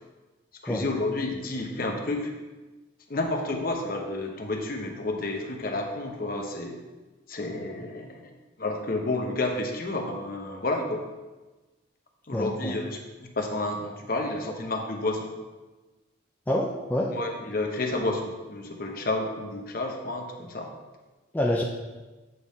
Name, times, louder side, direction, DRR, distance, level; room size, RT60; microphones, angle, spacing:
voice 1, 0.6-2.3 3.1-6.8 7.3-8.3 8.6-11.1 12.3-15.3 17.1-20.7, left 2 dB, 45° left, 2 dB, 0.8 m, -30 dB
voice 2, 12.3-12.8 16.5-17.1 21.3-21.6, left 1 dB, 10° left, -2 dB, 0.4 m, -27 dB
8.0 x 3.5 x 4.2 m, 1.2 s
head